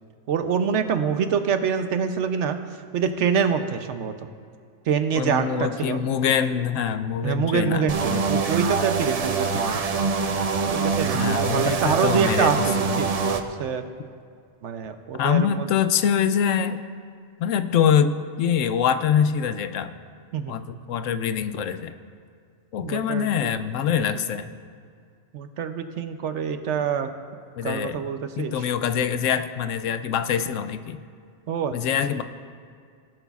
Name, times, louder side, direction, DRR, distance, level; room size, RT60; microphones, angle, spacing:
voice 1, 0.3-2.6 2.9-4.3 4.9-6.0 7.2-10.1 10.7-13.9 14.6-15.7 20.3-20.6 22.8-23.5 25.3-27.1 27.6-28.7 31.5-31.7, right 7 dB, 65° right, 8 dB, 0.9 m, -26 dB
voice 2, 5.1-8.4 11.1-13.1 15.2-16.8 17.4-19.9 20.5-21.9 22.7-24.5 27.6-28.0 28.4-31.0 31.7-32.2, left 8 dB, 75° left, 10 dB, 0.9 m, -24 dB
sound 1, 7.9-13.4, right 5 dB, 50° right, 0.4 m, -25 dB
18.0 x 11.0 x 2.4 m, 2.2 s
omnidirectional pair, 1.4 m